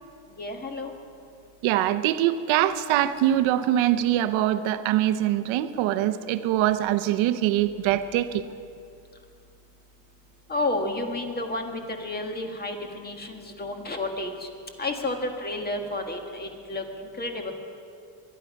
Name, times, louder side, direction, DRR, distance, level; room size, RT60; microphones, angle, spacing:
voice 1, 0.4-0.9 10.5-14.5 14.8-16.8 17.2-17.5, left 2 dB, 20° left, 4 dB, 1.7 m, -31 dB
voice 2, 1.6-8.4, right 12 dB, 80° right, 11 dB, 0.9 m, -23 dB
21.0 x 12.0 x 5.3 m, 2.4 s
cardioid pair, 130°, 46 cm